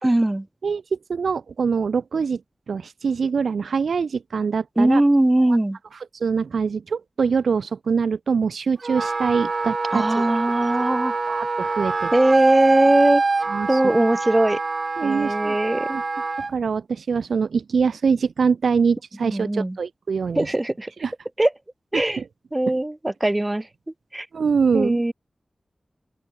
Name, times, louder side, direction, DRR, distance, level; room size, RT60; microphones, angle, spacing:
voice 1, 0.0-0.5 4.8-5.8 9.9-11.1 12.1-13.2 13.7-14.6 15.0-16.0 19.2-19.8 20.3-20.9 21.4-21.5 21.9-22.2 22.5-23.7 24.1-24.3 24.7-25.1, right 1 dB, 25° right, 3.2 m, -20 dB
voice 2, 0.6-2.4 2.7-5.0 6.2-10.3 11.3-12.1 13.5-13.8 15.0-15.5 15.9-16.0 16.5-20.5 21.0-21.1 21.9-22.2 24.3-25.0, right 5 dB, 90° right, 0.7 m, -24 dB
Wind instrument woodwind instrument, 8.8-16.5, right 3 dB, 60° right, 2.7 m, -25 dB
open air
cardioid pair, 45°, 0 cm